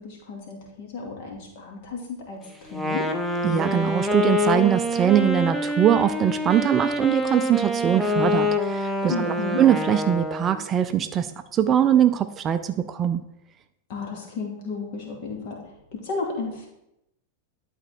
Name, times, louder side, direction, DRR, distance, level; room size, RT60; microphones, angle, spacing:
voice 1, 0.0-2.4 2.7-3.1 9.1-9.6 13.9-16.7, left 4 dB, 50° left, 0 dB, 2.4 m, -33 dB
Wind instrument woodwind instrument, 2.7-10.6, left 1 dB, ahead, 0.8 m, -26 dB
voice 2, 3.4-13.2, right 10 dB, 25° right, 10 dB, 0.4 m, -22 dB
11.5 x 4.3 x 4.4 m, 0.86 s
figure-of-eight pair, 90°, 0 cm